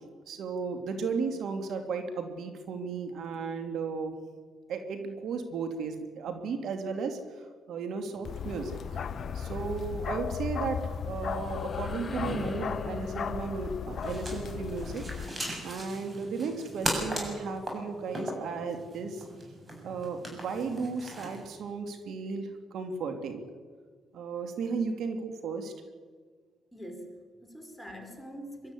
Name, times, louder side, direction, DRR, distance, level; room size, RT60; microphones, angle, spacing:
voice 1, 0.3-4.2 4.7-9.0 9.3-15.1 15.6-19.2 19.8-23.4 24.1-25.7, right 4 dB, 70° right, 6 dB, 2.6 m, -35 dB
Bark, 8.3-15.3, left 7 dB, 55° left, 1.0 m, -36 dB
sound 1, 11.2-16.7, left 3 dB, 25° left, 1.9 m, -43 dB
sound 2, 13.9-21.5, right 1 dB, 25° right, 7.4 m, -38 dB
voice 2, 26.7-28.7, equal, 5° left, 3 dB, 4.5 m, -44 dB
23.5 x 12.5 x 9.9 m, 1.5 s
cardioid pair, 90°, 0 cm